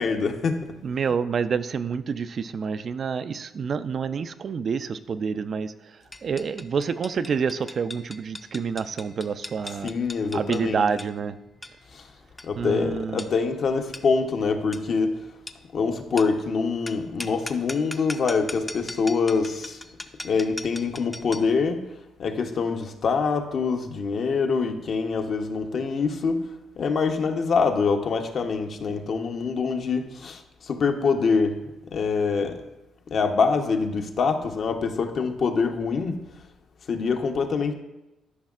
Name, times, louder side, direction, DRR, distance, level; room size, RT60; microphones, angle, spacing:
voice 1, 0.0-0.7 9.8-10.9 11.9-12.1 12.4-15.3 15.7-19.8 20.2-21.9 22.2-32.6 33.1-36.2 36.9-37.7, left 5 dB, 55° left, 5 dB, 0.8 m, -25 dB
voice 2, 0.8-5.7 6.2-9.9 10.3-11.4 12.6-13.3, right 6 dB, 50° right, 12 dB, 0.3 m, -28 dB
sound 1, 6.1-21.6, left 2 dB, 15° left, 0.5 m, -41 dB
13.0 x 5.3 x 2.4 m, 0.94 s
cardioid pair, 90°, 0 cm